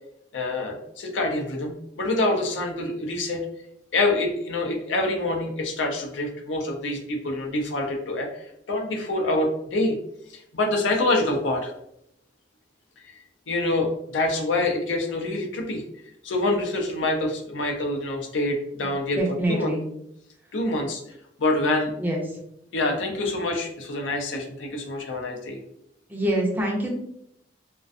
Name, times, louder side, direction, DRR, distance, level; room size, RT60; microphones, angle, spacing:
voice 1, 0.3-3.4 3.9-10.0 10.3-11.7 13.0-13.2 13.5-15.8 16.2-19.2 19.5-19.7 20.5-21.0 21.4-21.9 22.7-25.6, left 2 dB, 75° left, 2 dB, 0.5 m, -26 dB
voice 2, 18.8-19.8 22.0-22.4 26.1-26.9, right 1 dB, 10° right, -1 dB, 0.5 m, -26 dB
2.4 x 2.2 x 2.4 m, 0.75 s
head